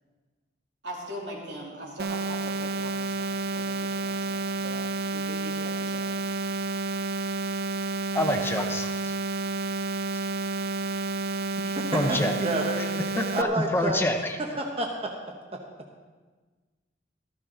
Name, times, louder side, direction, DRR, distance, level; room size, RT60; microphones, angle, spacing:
voice 1, 0.8-6.4, right 1 dB, 85° right, -3 dB, 3.2 m, -41 dB
sound 1, 2.0-13.4, right 3 dB, 55° right, 0.5 m, -30 dB
voice 2, 8.1-8.9 11.6-12.3 12.8-12.9 13.1-14.6, left 1 dB, 15° left, 5 dB, 0.7 m, -27 dB
voice 3, 11.7-12.8 13.3-14.0 14.4-15.1 15.5-15.6, right 1 dB, 35° right, 1 dB, 1.0 m, -29 dB
14.0 x 13.5 x 3.9 m, 1.3 s
head